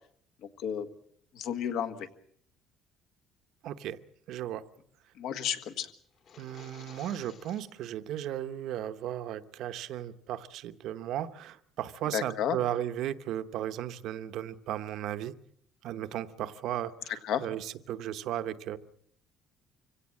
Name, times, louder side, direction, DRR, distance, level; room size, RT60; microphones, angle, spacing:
voice 1, 0.4-0.9 1.3-2.1 5.2-5.9 12.1-12.6 17.2-17.4, left 9 dB, 60° left, 9 dB, 1.7 m, -32 dB
voice 2, 3.6-4.0 4.3-4.6 6.4-15.4 15.8-18.8, right 11 dB, 60° right, 10 dB, 1.0 m, -35 dB
sound 1, 6.1-7.9, left 7 dB, 45° left, 2.0 m, -54 dB
25.5 x 17.0 x 7.5 m, 0.65 s
cardioid pair, 170°, 0 cm